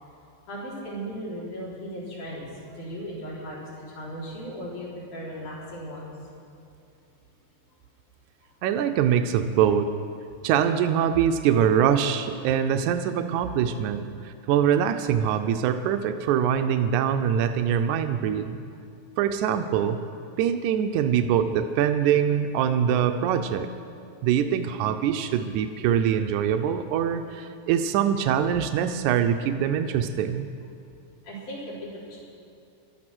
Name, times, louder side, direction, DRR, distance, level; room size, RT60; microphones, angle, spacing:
voice 1, 0.5-6.1 31.2-32.2, equal, 85° left, -7 dB, 5.7 m, -37 dB
voice 2, 8.6-9.9 10.4-18.6 19.2-20.0 20.4-23.7 24.2-30.5, right 8 dB, 80° right, 7 dB, 2.1 m, -23 dB
19.0 x 12.5 x 6.1 m, 2.4 s
omnidirectional pair, 3.4 m